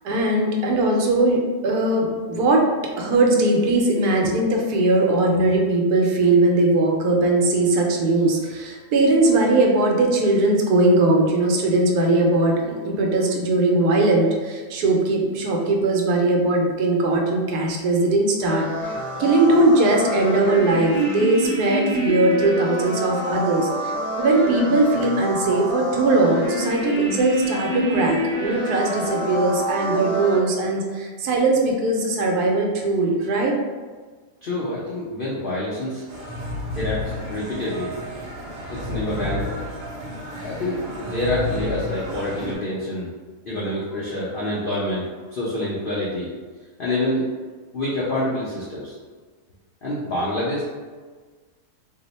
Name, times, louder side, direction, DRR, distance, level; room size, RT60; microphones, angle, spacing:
voice 1, 0.0-2.6 3.0-18.9 19.2-33.5, right 2 dB, 80° right, 0 dB, 1.1 m, -20 dB
sound 1, 18.4-30.4, equal, 15° right, 1.1 m, -27 dB
voice 2, 34.4-36.0 36.8-37.9 38.7-39.6 40.4-43.1 43.5-46.3 46.8-47.2 47.7-48.9 49.8-50.6, left 1 dB, 80° left, -7 dB, 0.4 m, -27 dB
sound 2, 36.1-42.5, left 1 dB, 40° right, 0.7 m, -31 dB
2.8 x 2.0 x 3.9 m, 1.4 s
omnidirectional pair, 1.7 m